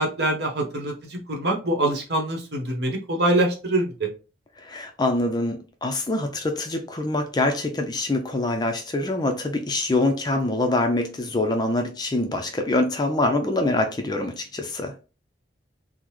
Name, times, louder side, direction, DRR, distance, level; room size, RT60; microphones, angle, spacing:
voice 1, 0.0-4.1, right 1 dB, 60° right, 1.0 m, -24 dB
voice 2, 4.6-15.0, left 2 dB, 20° left, 0.4 m, -25 dB
3.7 x 2.0 x 3.0 m
head